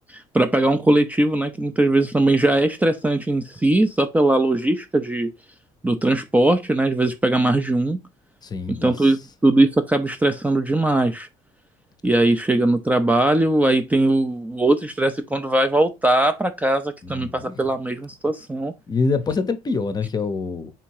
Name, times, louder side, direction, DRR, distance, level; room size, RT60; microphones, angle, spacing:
voice 1, 0.1-5.3 5.8-8.0 8.7-11.3 12.0-18.7, right 2 dB, 10° right, 0.4 m, -20 dB
voice 2, 8.4-8.9 17.0-17.6 18.9-20.7, left 4 dB, 30° left, 0.7 m, -25 dB
3.6 x 2.8 x 4.6 m
supercardioid pair, 95°, 14 cm